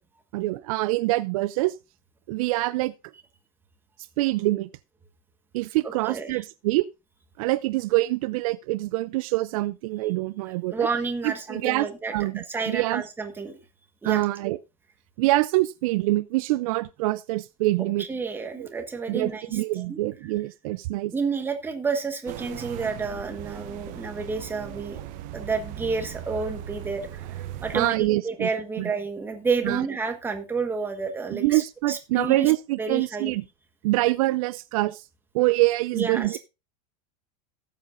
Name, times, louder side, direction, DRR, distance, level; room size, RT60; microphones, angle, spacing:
voice 1, 0.3-1.8 2.3-2.9 4.2-4.7 5.5-6.9 7.4-10.9 11.2-13.0 14.0-14.6 15.2-18.0 18.6-18.7 19.1-21.1 27.7-28.5 28.8-28.9 29.6-29.8 31.3-33.4 33.8-35.1 35.3-36.4, right 19 dB, 60° right, 0.4 m, -25 dB
voice 2, 5.8-6.4 10.7-13.6 14.0-14.2 18.0-20.0 21.1-25.0 25.3-31.6 31.9-32.5 32.8-33.3 35.9-36.4, right 4 dB, 10° right, 1.4 m, -30 dB
sound 1, 22.3-27.9, right 12 dB, 40° right, 0.8 m, -38 dB
18.5 x 7.6 x 2.6 m
supercardioid pair, 155°, 20 cm